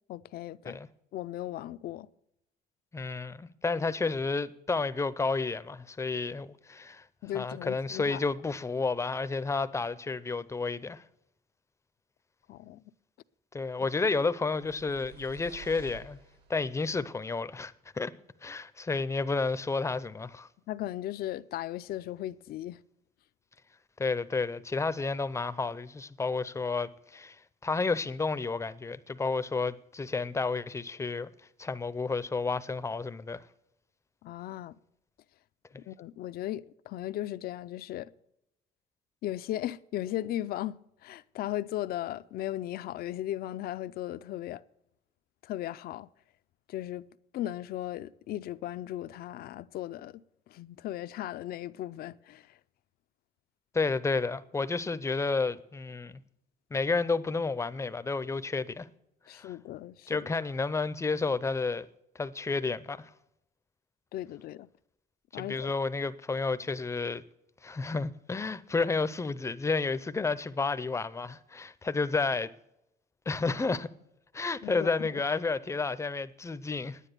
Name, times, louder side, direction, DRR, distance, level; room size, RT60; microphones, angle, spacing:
voice 1, 0.1-0.8 1.1-2.1 7.2-8.2 12.5-12.8 20.7-22.8 34.2-34.7 35.8-38.1 39.2-44.6 45.4-46.1 46.7-47.1 47.3-50.1 50.5-52.5 59.3-60.2 64.1-64.7 65.3-65.7 74.6-75.2, left 13 dB, 65° left, 0.5 m, -37 dB
voice 2, 2.9-7.0 7.3-11.0 13.5-16.2 16.5-18.1 18.4-20.5 24.0-27.4 27.6-31.3 31.6-33.4 53.7-56.2 56.7-58.9 59.3-59.5 60.1-61.9 62.2-63.1 65.3-67.2 67.6-72.5 73.3-73.9 74.3-77.0, left 4 dB, 15° left, 0.6 m, -31 dB
sound 1, 14.5-16.9, right 8 dB, 70° right, 2.8 m, -51 dB
10.0 x 9.7 x 6.7 m
cardioid pair, 110°, 17 cm